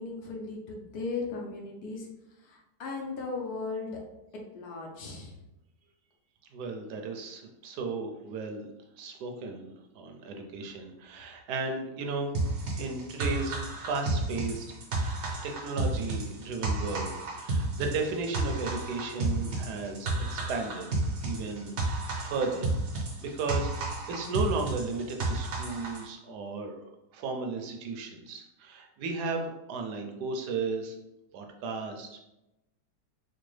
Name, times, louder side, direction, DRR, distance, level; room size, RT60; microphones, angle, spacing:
voice 1, 0.0-2.1 2.4-4.0 4.5-5.4, left 4 dB, 70° left, 0 dB, 1.2 m, -37 dB
voice 2, 6.5-8.7 9.0-12.3 12.8-14.7 15.4-20.9 21.2-22.7 23.2-26.8 27.1-30.9 31.3-32.2, right 4 dB, 75° right, 3 dB, 1.1 m, -35 dB
sound 1, 12.3-26.0, right 2 dB, 55° right, 0.6 m, -32 dB
4.4 x 2.2 x 3.2 m, 0.93 s
omnidirectional pair, 1.8 m